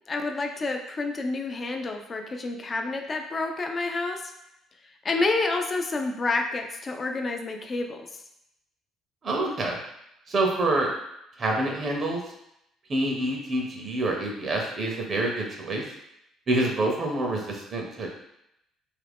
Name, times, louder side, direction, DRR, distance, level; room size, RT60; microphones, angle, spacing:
voice 1, 0.1-4.2 5.0-8.1, left 3 dB, 30° left, 3 dB, 0.3 m, -29 dB
voice 2, 9.2-9.8 10.3-10.9 11.4-12.2 12.9-15.8 16.5-18.1, right 2 dB, 35° right, 0 dB, 0.6 m, -27 dB
2.8 x 2.4 x 3.4 m, 0.80 s
cardioid pair, 125°, 0 cm